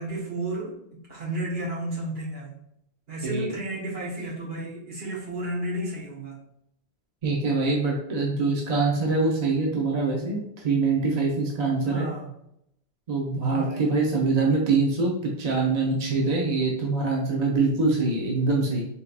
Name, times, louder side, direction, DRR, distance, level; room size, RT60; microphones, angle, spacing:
voice 1, 0.0-2.6 3.1-6.4 11.8-12.3 13.4-13.9, right 1 dB, 65° right, -6 dB, 1.7 m, -32 dB
voice 2, 3.2-3.5 7.2-12.1 13.1-18.9, right 3 dB, 40° right, -2 dB, 0.8 m, -24 dB
4.2 x 3.7 x 2.4 m, 0.77 s
omnidirectional pair, 1.1 m